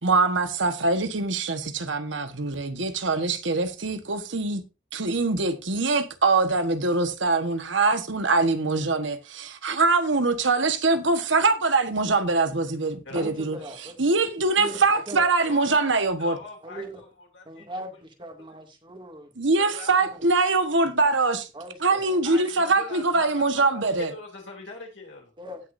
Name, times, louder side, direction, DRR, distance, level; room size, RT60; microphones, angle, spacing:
voice 1, 0.0-4.6 4.9-13.6 14.0-16.4 19.4-21.5 21.8-24.1, right 3 dB, 70° right, 1.4 m, -23 dB
voice 2, 13.1-14.0 14.6-15.2 16.6-17.0 17.5-19.3 20.1-20.2 21.5-22.0 25.4-25.6, right 1 dB, 25° right, 2.4 m, -39 dB
voice 3, 15.4-17.7 19.6-19.9 22.1-25.3, left 3 dB, 70° left, 3.1 m, -41 dB
17.0 x 6.5 x 2.7 m
head